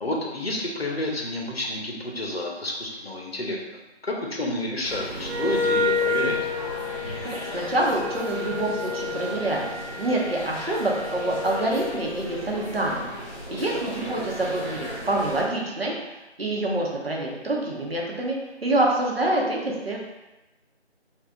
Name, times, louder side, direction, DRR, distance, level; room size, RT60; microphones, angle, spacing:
voice 1, 0.0-3.8 4.1-6.4 13.5-13.8, left 1 dB, 65° left, -1 dB, 0.9 m, -30 dB
sound 1, 4.8-15.4, equal, 30° left, 1.1 m, -36 dB
Wind instrument woodwind instrument, 5.2-11.9, left 3 dB, 85° right, 0.8 m, -29 dB
voice 2, 7.2-20.0, right 2 dB, 60° right, -2 dB, 0.9 m, -27 dB
3.7 x 2.4 x 3.6 m, 1.0 s
figure-of-eight pair, 175°, 34 cm